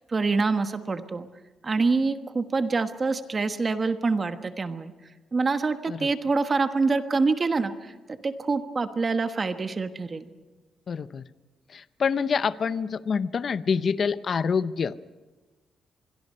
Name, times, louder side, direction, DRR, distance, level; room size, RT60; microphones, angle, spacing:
voice 1, 0.1-1.3 1.6-4.9 5.3-7.7 8.2-10.3, right 4 dB, 30° right, 8 dB, 1.3 m, -25 dB
voice 2, 10.9-11.2 11.7-14.9, left 6 dB, 45° left, 14 dB, 0.7 m, -26 dB
25.5 x 22.0 x 5.6 m, 1.2 s
cardioid pair, 115°, 0 cm